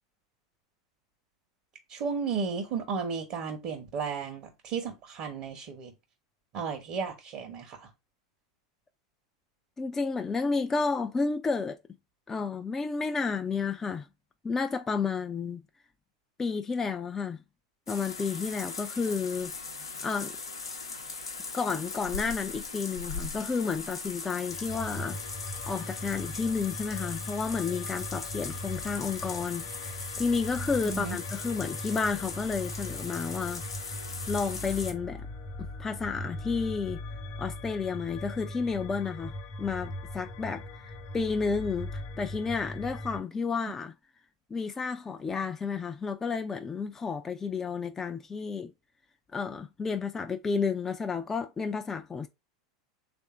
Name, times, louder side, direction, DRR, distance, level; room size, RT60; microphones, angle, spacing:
voice 1, 1.9-5.9 6.5-7.9 30.9-31.2, right 5 dB, 50° right, 1.0 m, -34 dB
voice 2, 9.8-11.8 12.3-14.1 14.4-15.6 16.4-17.4 17.9-19.5 20.0-20.3 21.5-25.2 25.7-33.6 34.3-35.3 35.6-37.0 37.4-43.9 44.5-48.7 49.3-52.3, left 5 dB, 20° left, 0.4 m, -31 dB
sound 1, 17.9-34.9, left 4 dB, 90° left, 0.7 m, -39 dB
sound 2, 24.5-43.2, left 1 dB, 45° left, 0.9 m, -40 dB
3.4 x 2.6 x 4.4 m
hypercardioid pair, 90°, 2 cm